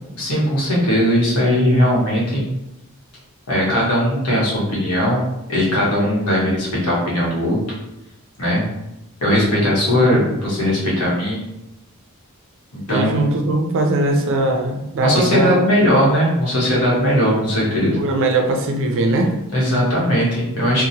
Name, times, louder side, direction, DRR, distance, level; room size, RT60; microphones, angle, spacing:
voice 1, 0.2-2.5 3.5-7.6 8.4-8.6 9.2-11.4 12.7-13.2 15.0-18.0 19.5-20.9, equal, 85° left, -5 dB, 1.0 m, -18 dB
voice 2, 12.9-15.6 17.9-19.3, right 2 dB, 60° right, 3 dB, 0.4 m, -20 dB
2.8 x 2.1 x 2.7 m, 0.90 s
head